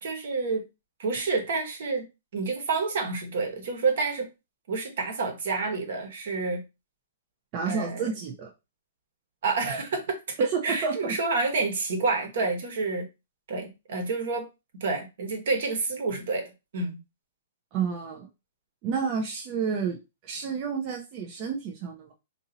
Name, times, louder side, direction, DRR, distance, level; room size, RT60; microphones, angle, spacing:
voice 1, 0.0-0.7 1.0-2.0 2.3-4.3 4.7-6.6 7.6-8.1 9.4-13.0 13.5-14.5 14.8-17.0, right 4 dB, 60° right, 1.2 m, -28 dB
voice 2, 7.5-8.5 10.5-11.1 17.7-18.3 18.8-20.0 20.2-22.1, right 6 dB, 30° right, 0.6 m, -30 dB
2.8 x 2.7 x 3.9 m
hypercardioid pair, 160°, 0 cm